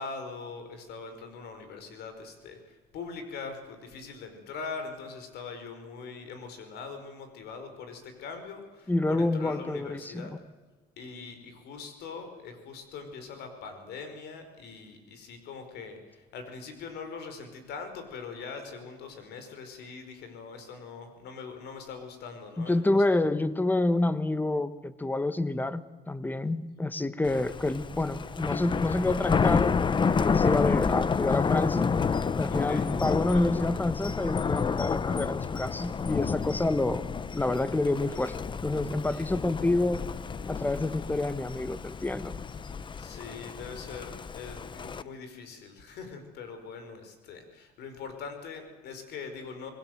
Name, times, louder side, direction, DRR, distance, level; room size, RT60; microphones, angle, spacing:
voice 1, 0.0-10.3 11.0-23.2 32.5-32.9 39.1-39.3 42.9-49.7, left 5 dB, 75° left, 7 dB, 5.0 m, -42 dB
voice 2, 8.9-10.4 22.6-32.0 32.4-37.1 37.3-38.4 38.6-40.0 40.5-42.3, left 2 dB, 10° left, 14 dB, 1.2 m, -28 dB
Thunder, 27.2-45.0, left 5 dB, 30° left, 0.9 m, -30 dB
25.5 x 20.5 x 8.0 m, 1.3 s
cardioid pair, 110°, 17 cm